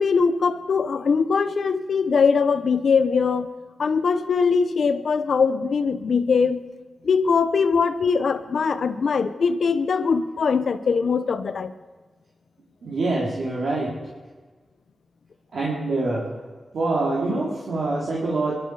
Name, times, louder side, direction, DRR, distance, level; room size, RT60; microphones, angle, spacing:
voice 1, 0.0-3.5 3.8-6.7 7.0-11.7, left 5 dB, 75° left, 11 dB, 1.0 m, -21 dB
voice 2, 12.8-13.9 15.5-16.3 16.7-18.5, right 2 dB, 80° right, -6 dB, 3.5 m, -25 dB
22.0 x 13.0 x 4.9 m, 1.3 s
cardioid pair, 45°, 0 cm